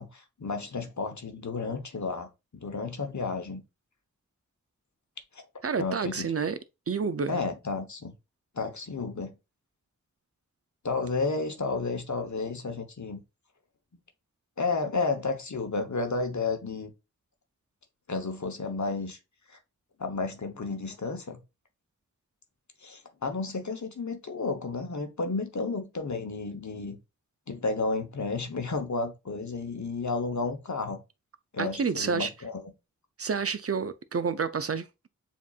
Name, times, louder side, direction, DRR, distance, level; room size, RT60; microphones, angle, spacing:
voice 1, 0.0-3.6 5.3-5.4 5.8-6.3 7.3-8.1 8.5-9.3 10.8-13.2 14.6-16.9 18.1-19.2 19.5-19.6 20.0-21.4 22.8-27.0 27.5-31.0 31.5-32.6, left 3 dB, 65° left, 0.9 m, -32 dB
voice 2, 5.6-6.6 6.9-7.4 31.6-32.3 33.2-35.1, right 5 dB, 50° right, 0.4 m, -29 dB
7.2 x 2.8 x 2.3 m
wide cardioid pair, 45°, 31 cm